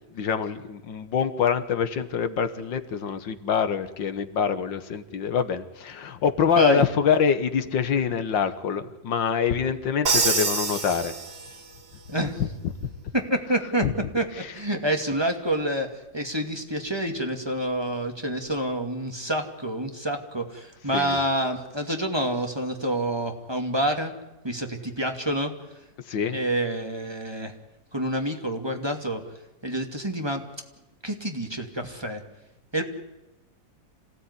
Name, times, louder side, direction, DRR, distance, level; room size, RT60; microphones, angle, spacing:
voice 1, 0.1-11.1 12.4-12.5 13.8-13.9 20.9-21.2 26.1-26.4, left 7 dB, 85° left, 10 dB, 2.0 m, -25 dB
Crash cymbal, 10.1-11.8, right 4 dB, 60° right, 4.0 m, -26 dB
voice 2, 13.1-13.9 14.1-14.3 14.5-15.9 16.1-24.1 24.4-25.5 26.3-27.5 27.9-29.2 29.6-30.4 31.0-32.2 32.7-32.8, right 1 dB, 15° right, 3 dB, 2.5 m, -27 dB
27.0 x 17.0 x 9.7 m, 1.0 s
omnidirectional pair, 2.0 m